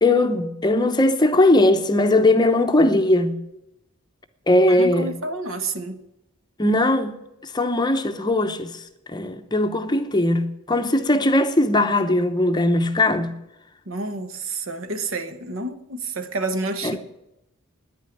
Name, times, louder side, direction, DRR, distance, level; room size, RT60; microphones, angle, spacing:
voice 1, 0.0-3.4 4.5-5.1 6.6-13.3 16.8-17.0, left 1 dB, 20° left, 0.7 m, -19 dB
voice 2, 4.5-6.0 13.9-17.0, right 2 dB, 65° right, 1.2 m, -29 dB
9.9 x 9.2 x 9.9 m
head